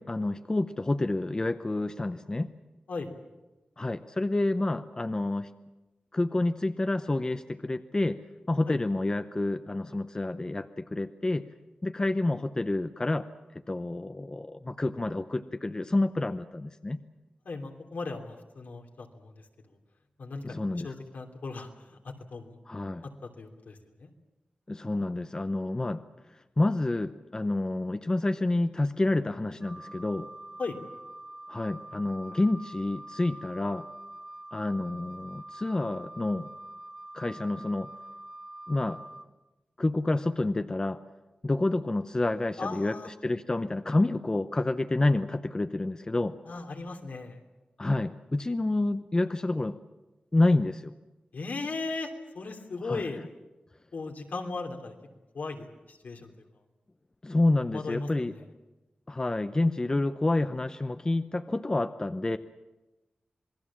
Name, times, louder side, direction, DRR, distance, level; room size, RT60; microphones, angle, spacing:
voice 1, 0.0-2.5 3.8-5.5 6.1-8.2 8.5-11.4 11.8-13.3 13.7-17.0 20.4-20.9 22.7-23.0 24.7-26.0 26.6-30.3 31.5-33.9 34.5-36.5 37.1-37.9 38.7-39.0 39.8-41.0 41.4-43.0 43.2-46.3 47.8-49.8 50.3-50.9 52.8-53.0 57.2-58.3 59.1-62.4, left 2 dB, 25° left, 10 dB, 0.7 m, -28 dB
voice 2, 17.4-19.4 20.2-20.5 20.8-22.6 23.2-24.1 30.6-30.8 42.6-43.1 46.5-47.4 51.3-53.2 53.9-55.0 55.3-56.3 57.7-58.4, left 3 dB, 80° left, 2 dB, 3.1 m, -37 dB
Wind instrument woodwind instrument, 29.6-39.3, right 1 dB, 25° right, 1.6 m, -45 dB
27.0 x 20.5 x 7.4 m, 1.1 s
wide cardioid pair, 110°, 3 cm